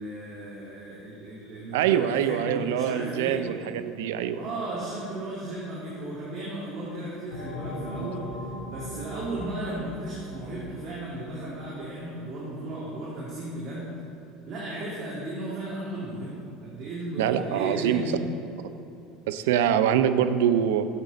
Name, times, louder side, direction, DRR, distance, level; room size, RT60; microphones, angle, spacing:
voice 1, 0.0-3.4 4.3-13.9 14.5-18.3, right 1 dB, 50° right, -7 dB, 2.5 m, -35 dB
voice 2, 1.7-4.4 8.0-8.1 17.2-18.1 19.3-20.9, right 9 dB, 70° right, 10 dB, 0.5 m, -24 dB
sound 1, 7.3-11.7, left 1 dB, 70° left, 2.7 m, -39 dB
12.5 x 8.0 x 4.1 m, 2.7 s
hypercardioid pair, 75°, 0 cm